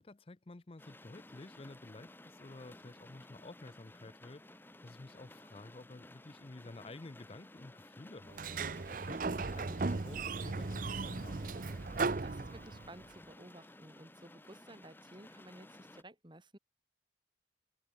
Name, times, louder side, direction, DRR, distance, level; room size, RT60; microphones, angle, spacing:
voice 1, 0.0-8.4 8.9-11.5, left 2 dB, 30° left, 0.6 m, -51 dB
sound 1, 0.8-16.0, left 1 dB, 10° left, 1.1 m, -56 dB
Sliding door, 8.3-13.0, right 3 dB, 45° right, 0.7 m, -37 dB
voice 2, 12.0-16.6, right 1 dB, 25° right, 2.5 m, -54 dB
head